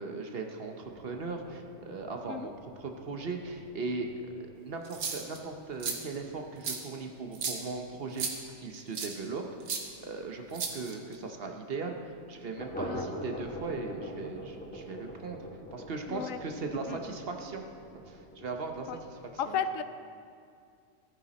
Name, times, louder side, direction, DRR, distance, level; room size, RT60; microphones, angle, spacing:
voice 1, 0.0-4.3 4.6-8.3 8.6-9.4 10.0-12.0 12.3-15.4 15.7-17.6 17.9-19.6, right 3 dB, 50° right, 4 dB, 1.0 m, -38 dB
sound 1, 0.8-10.1 10.4-10.5 10.8-10.9 11.3-11.4 12.5-19.3, equal, 5° left, 1.4 m, -45 dB
sound 2, 4.8-5.4 5.8-6.0 6.6-6.8 7.3-7.6 8.2-8.3 8.9-9.1 9.7-9.8 10.5-11.1, right 5 dB, 85° right, 1.5 m, -34 dB
voice 2, 16.1-16.4 16.9-17.0 18.9-19.0 19.4-19.8, left 7 dB, 80° left, 11 dB, 1.0 m, -33 dB
14.5 x 9.0 x 4.2 m, 2.3 s
omnidirectional pair, 1.4 m